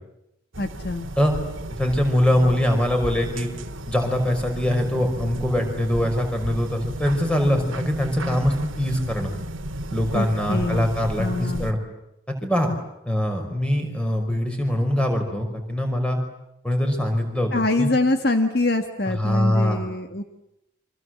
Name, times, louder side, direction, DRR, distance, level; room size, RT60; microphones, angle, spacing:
sound 1, 0.5-11.7, right 1 dB, 85° right, 2.0 m, -34 dB
voice 1, 0.6-1.1 10.1-10.9 11.2-11.7 17.5-20.2, left 2 dB, 50° left, 6 dB, 1.7 m, -24 dB
voice 2, 1.8-3.5 3.9-9.4 9.9-11.8 12.3-12.7 13.1-16.2 16.6-17.5 17.8-17.9 19.1-19.8, left 1 dB, 5° left, 4 dB, 5.4 m, -23 dB
30.0 x 25.5 x 7.9 m, 0.82 s
head